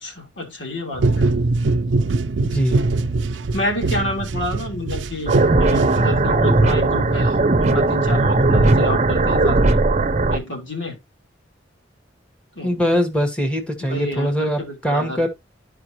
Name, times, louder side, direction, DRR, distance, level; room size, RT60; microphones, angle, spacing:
voice 1, 0.0-1.3 3.5-9.8 10.3-11.0 12.6-12.8 13.9-15.3, left 1 dB, 85° left, 2.8 m, -29 dB
sound 1, 1.0-6.5, right 3 dB, 80° right, 0.5 m, -22 dB
voice 2, 2.4-2.8 12.6-15.3, equal, 5° left, 1.6 m, -22 dB
sound 2, 5.3-10.4, right 2 dB, 40° right, 0.7 m, -17 dB
12.0 x 5.1 x 3.0 m
head